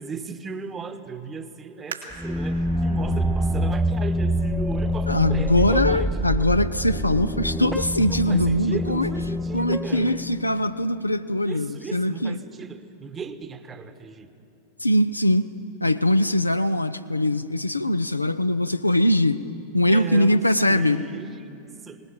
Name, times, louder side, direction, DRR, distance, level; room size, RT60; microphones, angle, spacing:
voice 1, 0.0-6.4 8.0-10.2 11.5-14.3 19.9-22.0, right 5 dB, 20° right, 1.1 m, -36 dB
sound 1, 1.9-5.3 5.9-6.0 6.6-7.0 7.4-7.5, right 5 dB, 75° right, 2.1 m, -44 dB
sound 2, 2.1-10.7, equal, ahead, 0.6 m, -26 dB
voice 2, 5.1-9.1 9.5-12.4 14.8-15.5 15.8-19.4 19.7-21.0, left 1 dB, 85° left, 0.5 m, -22 dB
20.5 x 19.5 x 7.3 m
figure-of-eight pair, 90°, 0 cm